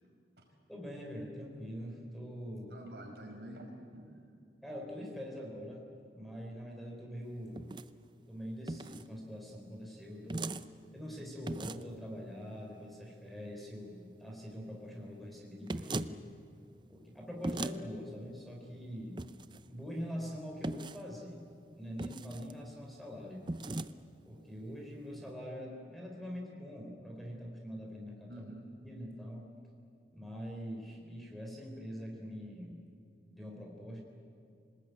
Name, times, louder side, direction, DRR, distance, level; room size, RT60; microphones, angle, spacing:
voice 1, 0.7-2.8 4.6-5.8 6.1-7.6 8.3-10.5 10.9-16.2 16.9-19.2 19.7-21.4 21.8-23.5 24.3-28.5 28.8-29.5 30.1-32.8 33.3-34.0, equal, ahead, -1 dB, 4.1 m, -44 dB
voice 2, 2.7-4.3 28.3-28.7, right 1 dB, 70° right, 1 dB, 5.7 m, -48 dB
sound 1, 7.6-7.9 8.7-9.1 10.3-10.7 11.5-11.9 15.7-16.1 17.4-17.8 19.2-19.6 20.6-21.0 22.0-22.5 23.5-23.9, right 2 dB, 25° right, 0.6 m, -38 dB
27.0 x 19.5 x 9.6 m, 2.5 s
head